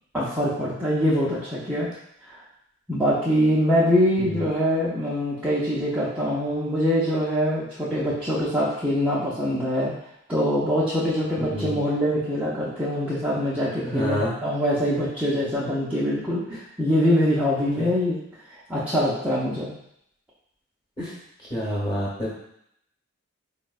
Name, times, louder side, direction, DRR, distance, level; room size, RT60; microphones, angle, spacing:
voice 1, 0.1-1.9 2.2-2.4 2.9-9.9 10.3-16.4 16.8-18.2 18.7-19.7, equal, 5° right, -11 dB, 0.4 m, -23 dB
voice 2, 11.4-11.8 13.8-14.3 16.5-16.6 17.8-17.9 21.0-21.1 21.5-22.3, equal, 20° left, -7 dB, 0.9 m, -28 dB
4.2 x 2.0 x 2.3 m, 0.75 s
head